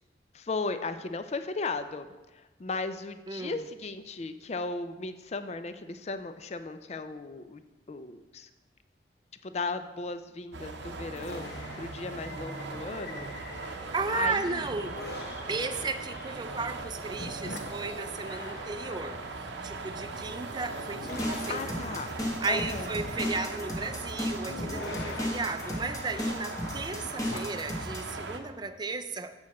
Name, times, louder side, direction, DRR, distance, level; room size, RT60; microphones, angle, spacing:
voice 1, 0.3-8.5 9.4-13.3 13.9-14.7 21.5-22.1 22.5-22.9, left 3 dB, 35° left, 10 dB, 0.4 m, -36 dB
sound 1, 10.5-28.4, right 3 dB, 90° right, 0.8 m, -40 dB
sound 2, 11.2-14.1 14.6-27.7, left 2 dB, 65° left, 1.0 m, -45 dB
voice 2, 13.9-15.0 15.5-21.7 22.4-29.3, right 3 dB, 25° right, 9 dB, 0.4 m, -34 dB
sound 3, 21.0-28.1, equal, 20° left, 1.0 m, -34 dB
7.8 x 6.2 x 4.2 m, 1.1 s
head